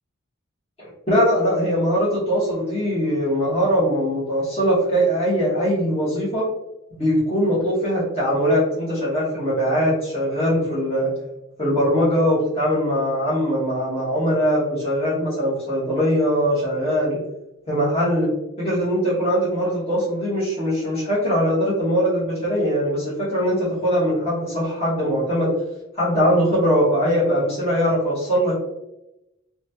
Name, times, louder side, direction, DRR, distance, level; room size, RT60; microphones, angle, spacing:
voice 1, 0.8-6.4 6.9-11.1 11.6-17.2 17.7-18.3 18.6-25.5 26.0-28.6, equal, 30° left, -10 dB, 1.1 m, -21 dB
2.9 x 2.2 x 2.7 m, 0.89 s
head